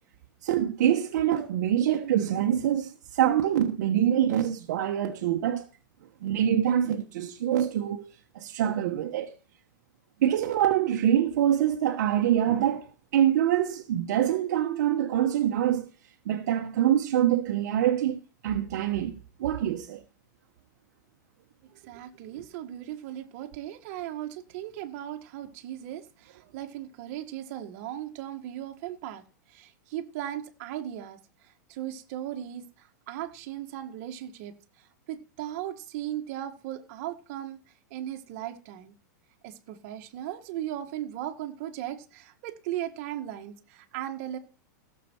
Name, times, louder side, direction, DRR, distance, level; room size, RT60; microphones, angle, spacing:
voice 1, 0.4-5.7 6.2-8.0 8.3-9.3 10.2-12.9 13.1-15.9 16.3-20.0, right 10 dB, 65° right, 1.2 m, -25 dB
voice 2, 21.7-37.6 37.9-38.9 39.4-44.4, right 12 dB, 45° right, 1.6 m, -37 dB
16.0 x 6.9 x 4.5 m
supercardioid pair, 155°, 10 cm